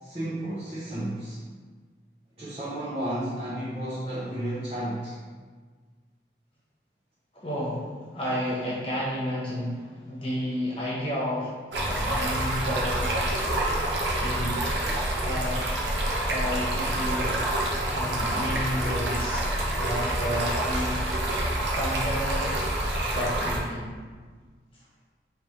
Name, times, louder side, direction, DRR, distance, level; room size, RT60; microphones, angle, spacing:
voice 1, 0.0-1.4 2.4-5.2, right 1 dB, 35° right, -10 dB, 0.8 m, -32 dB
voice 2, 7.3-11.6 11.8-13.2 14.2-14.6 15.2-15.7 16.3-17.4 17.9-19.5 19.8-20.9 21.7-22.6 23.1-23.9, equal, 30° left, -6 dB, 1.2 m, -31 dB
Stream, 11.7-23.6, right 1 dB, 85° right, 0.8 m, -27 dB
4.9 x 3.1 x 3.2 m, 1.5 s
head